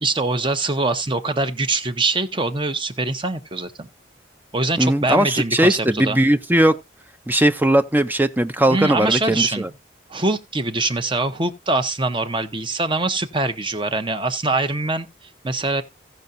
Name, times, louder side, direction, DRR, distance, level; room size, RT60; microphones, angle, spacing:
voice 1, 0.0-3.9 4.5-6.2 8.7-9.7 10.1-15.8, right 3 dB, 25° right, 1.0 m, -23 dB
voice 2, 4.8-6.8 7.3-9.7, right 1 dB, 10° right, 0.6 m, -18 dB
16.5 x 5.7 x 2.6 m
head